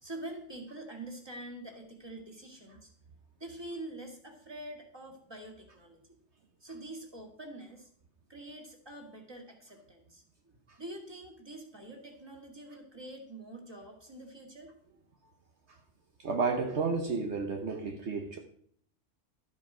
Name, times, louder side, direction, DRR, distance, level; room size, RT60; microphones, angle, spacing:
voice 1, 0.0-2.9 3.4-6.0 6.6-7.9 8.3-14.7, right 1 dB, 20° right, 2.0 m, -45 dB
voice 2, 16.2-18.4, right 4 dB, 65° right, 1.3 m, -31 dB
12.5 x 8.0 x 5.0 m
omnidirectional pair, 1.3 m